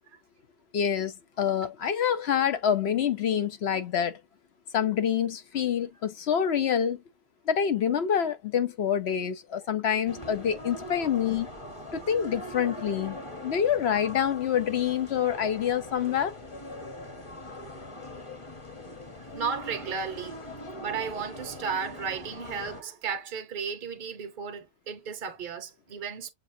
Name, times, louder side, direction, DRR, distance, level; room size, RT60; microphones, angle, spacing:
voice 1, 0.7-4.2 4.7-7.0 7.4-11.5 11.9-13.2 13.4-16.4, left 8 dB, 55° left, 0.9 m, -26 dB
sound 1, 10.1-22.8, left 1 dB, 25° left, 1.0 m, -41 dB
voice 2, 12.0-12.5 19.3-20.4 20.8-26.3, right 6 dB, 40° right, 0.9 m, -34 dB
7.1 x 2.4 x 2.7 m
omnidirectional pair, 1.5 m